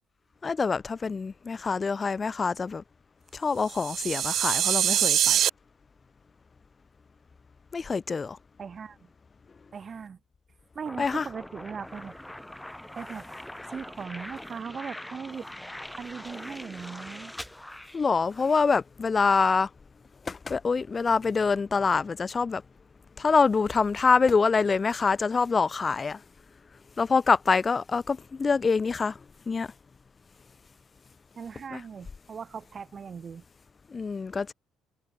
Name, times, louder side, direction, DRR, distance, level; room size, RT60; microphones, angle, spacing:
voice 1, 0.4-2.8 3.3-5.5 7.7-8.4 11.0-11.3 17.9-19.7 20.2-22.6 23.2-26.2 27.0-29.7 31.7-31.8 33.9-34.5, left 4 dB, 25° left, 0.9 m, -25 dB
sound 1, 3.7-5.5, right 11 dB, 60° right, 0.4 m, -24 dB
voice 2, 8.6-9.1 9.7-10.2 10.7-12.2 12.9-13.3 13.7-15.5 16.0-17.3 31.3-33.4, right 6 dB, 35° right, 1.5 m, -39 dB
sound 2, 10.9-18.7, left 1 dB, 5° left, 5.7 m, -43 dB
cardioid pair, 115°, 0 cm